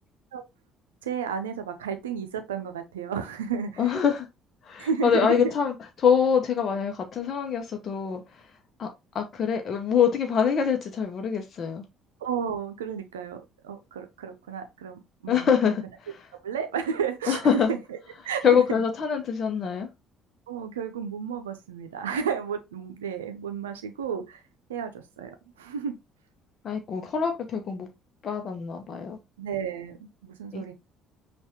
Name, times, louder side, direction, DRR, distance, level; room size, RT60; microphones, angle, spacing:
voice 1, 1.0-3.8 4.8-5.5 12.2-15.5 16.4-17.8 18.2-18.5 20.5-24.4 24.7-25.9 29.4-30.7, right 7 dB, 80° right, 0.6 m, -32 dB
voice 2, 3.8-4.3 4.6-8.9 9.1-11.9 15.3-16.3 17.3-17.7 18.4-19.9 26.6-27.9 28.2-29.2 30.5-30.7, left 7 dB, 45° left, 0.8 m, -25 dB
5.6 x 2.5 x 2.9 m
figure-of-eight pair, 50°, 0 cm